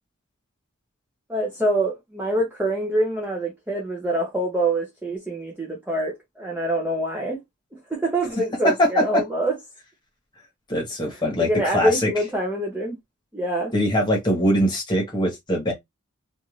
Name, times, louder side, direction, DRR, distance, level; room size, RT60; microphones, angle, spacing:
voice 1, 1.3-7.4 7.7-9.5 11.4-13.0 13.3-13.7, right 1 dB, 10° right, 0.6 m, -25 dB
voice 2, 8.6-9.2 10.7-12.1 13.7-15.7, equal, 20° left, 1.1 m, -22 dB
2.5 x 2.5 x 3.0 m
head